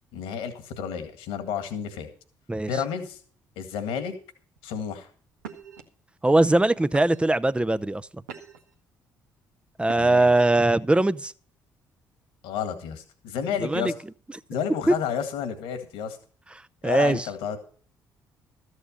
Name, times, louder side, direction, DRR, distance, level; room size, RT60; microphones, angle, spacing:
voice 1, 0.1-2.1 2.7-3.2 3.6-4.1 4.6-5.1 9.9-10.3 12.4-13.9 14.5-16.2 16.8-17.6, left 7 dB, 75° left, 2.0 m, -31 dB
sound 1, 4.5-4.8 5.4-5.8 6.5-6.6 6.9-7.4 7.9-8.7 9.8-10.4, right 6 dB, 85° right, 1.2 m, -43 dB
voice 2, 6.2-8.1 9.8-11.3 13.6-13.9 14.9-15.0 16.8-17.3, right 2 dB, 10° right, 0.6 m, -21 dB
13.5 x 8.3 x 5.3 m
hypercardioid pair, 50°, 9 cm